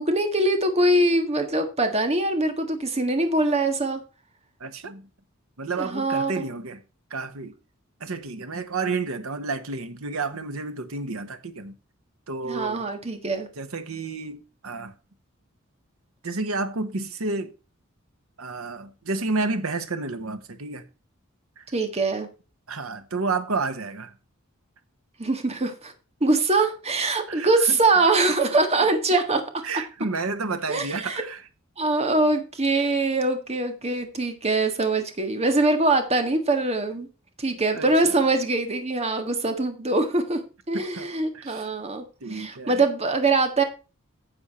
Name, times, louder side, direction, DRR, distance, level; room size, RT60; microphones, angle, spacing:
voice 1, 0.0-4.0 5.8-6.3 12.4-13.5 21.7-22.3 25.2-25.9 26.2-29.6 30.7-31.2 31.8-37.1 37.4-40.4 40.7-42.0 42.3-43.6, right 2 dB, 30° right, 1.6 m, -23 dB
voice 2, 4.6-5.1 5.6-6.8 7.1-7.5 8.0-11.8 12.3-12.8 13.6-14.9 16.2-17.5 18.4-20.8 21.6-21.7 22.7-24.1 27.3-27.8 29.6-31.4 37.7-38.1 40.7-41.7 42.2-42.8, right 3 dB, 90° right, 1.1 m, -31 dB
10.0 x 7.1 x 4.2 m
head